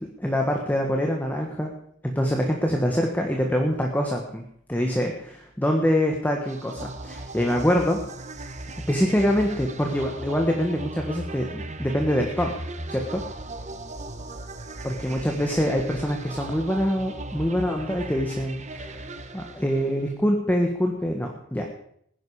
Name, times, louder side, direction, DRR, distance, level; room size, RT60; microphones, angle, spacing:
voice 1, 0.2-1.7 2.1-4.4 4.7-8.0 8.9-12.5 12.9-13.2 14.8-19.0 19.3-21.6, equal, 10° left, 1 dB, 1.5 m, -25 dB
sound 1, 6.5-20.1, right 2 dB, 35° right, 1.2 m, -37 dB
19.5 x 10.5 x 4.9 m, 0.69 s
head